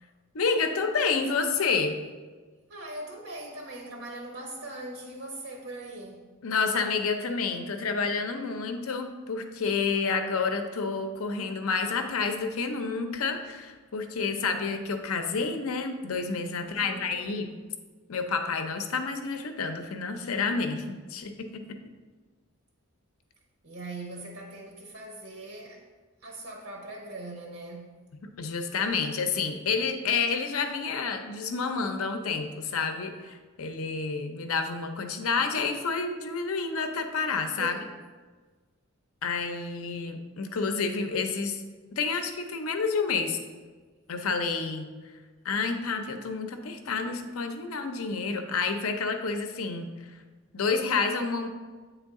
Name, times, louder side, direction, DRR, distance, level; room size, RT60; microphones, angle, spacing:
voice 1, 0.3-2.0 6.4-17.5 18.1-21.8 28.4-37.7 39.2-41.6 41.9-43.4 44.1-44.9 45.4-50.1 50.5-51.5, left 4 dB, 80° left, 6 dB, 0.6 m, -29 dB
voice 2, 2.7-6.2 16.6-17.5 23.6-25.9 26.2-28.0 37.6-37.9, right 2 dB, 80° right, 1 dB, 0.8 m, -41 dB
8.3 x 3.4 x 3.6 m, 1.4 s
head